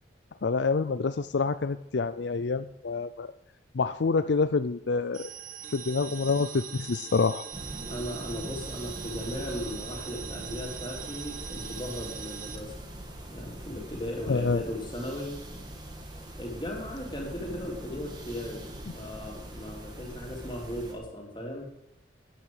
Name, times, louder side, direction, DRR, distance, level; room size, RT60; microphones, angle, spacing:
voice 1, 0.4-3.3 3.7-5.2 5.7-7.4 14.3-14.6, left 4 dB, 70° left, 12 dB, 0.5 m, -27 dB
sound 1, 5.1-12.6, right 8 dB, 45° right, 1.1 m, -42 dB
sound 2, 7.5-20.9, right 1 dB, 25° right, 2.1 m, -42 dB
voice 2, 7.9-12.8 13.3-15.4 16.4-21.7, left 1 dB, 25° left, 0 dB, 3.3 m, -37 dB
12.0 x 9.4 x 8.0 m, 0.80 s
head